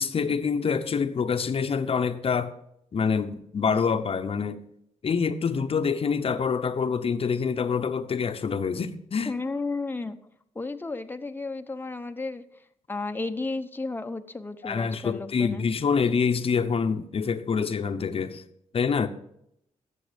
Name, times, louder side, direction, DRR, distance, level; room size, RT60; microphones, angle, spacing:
voice 1, 0.0-2.5 2.9-4.6 5.0-9.3 14.6-18.4 18.7-19.1, left 6 dB, 50° left, 0.8 m, -26 dB
voice 2, 9.3-10.2 10.5-12.4 12.9-15.7, left 3 dB, 15° left, 0.8 m, -33 dB
12.0 x 7.8 x 5.1 m
cardioid pair, 85°, 13 cm